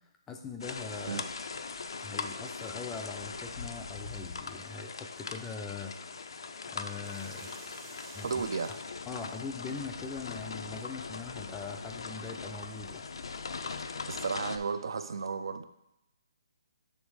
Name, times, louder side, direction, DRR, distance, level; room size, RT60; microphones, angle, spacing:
voice 1, 0.3-1.2 2.0-5.9 6.7-7.5 8.1-8.4 8.7-8.8 9.1-13.1, left 4 dB, 10° left, 3 dB, 0.4 m, -41 dB
sound 1, 0.6-14.6, left 4 dB, 70° left, 0.4 m, -40 dB
sound 2, 7.0-12.5, right 4 dB, 25° right, 0.7 m, -56 dB
voice 2, 8.2-8.8 14.1-15.6, right 5 dB, 65° right, 11 dB, 0.5 m, -34 dB
7.2 x 3.4 x 4.7 m, 0.90 s
hypercardioid pair, 165°, 3 cm